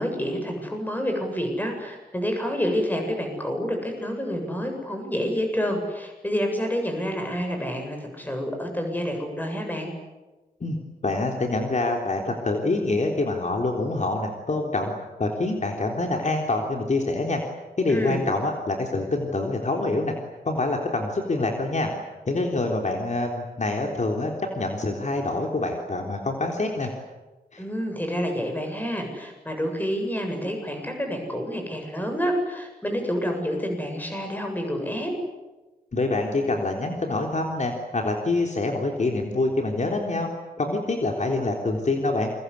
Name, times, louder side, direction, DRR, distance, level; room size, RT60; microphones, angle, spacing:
voice 1, 0.0-9.9 17.9-18.2 27.6-35.1, equal, 10° left, 3 dB, 7.9 m, -28 dB
voice 2, 11.0-14.9 15.2-17.4 17.8-20.1 20.5-21.9 22.3-26.9 27.5-27.6 35.9-40.3 40.6-42.3, left 2 dB, 50° left, 2 dB, 3.6 m, -26 dB
29.0 x 24.0 x 8.4 m, 1.2 s
wide cardioid pair, 120°, 16 cm